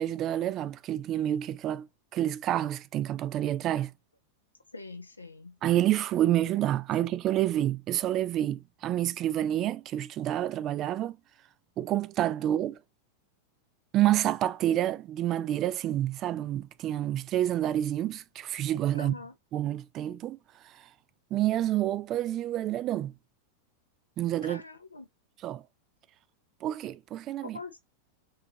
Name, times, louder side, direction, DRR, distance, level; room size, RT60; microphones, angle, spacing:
voice 1, 0.0-1.9 2.1-3.9 5.6-11.2 11.8-12.8 13.9-19.2 19.5-20.4 20.6-20.9 21.3-23.1 24.2-24.6 25.4-25.6 26.6-27.6, right 12 dB, 35° right, 0.4 m, -28 dB
voice 2, 4.7-5.6 18.9-19.3 24.4-25.1 27.5-27.9, left 3 dB, 80° left, 0.7 m, -43 dB
4.4 x 3.4 x 2.8 m
figure-of-eight pair, 90°, 0 cm